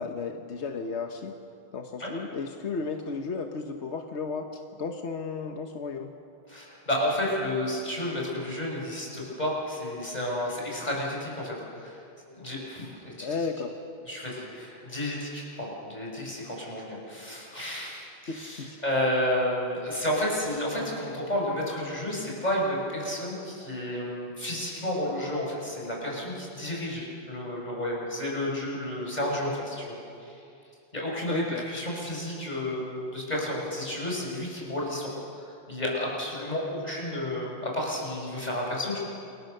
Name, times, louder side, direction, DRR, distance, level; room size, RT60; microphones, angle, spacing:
voice 1, 0.0-1.3 1.7-6.1 13.2-13.7 18.3-18.8 31.3-31.7, left 4 dB, 90° left, 4 dB, 1.5 m, -34 dB
voice 2, 6.5-12.0 12.3-13.4 14.1-29.9 30.2-30.4 30.9-35.1 35.7-39.0, left 1 dB, 40° left, -3 dB, 6.4 m, -31 dB
28.0 x 23.0 x 6.7 m, 2.7 s
omnidirectional pair, 1.1 m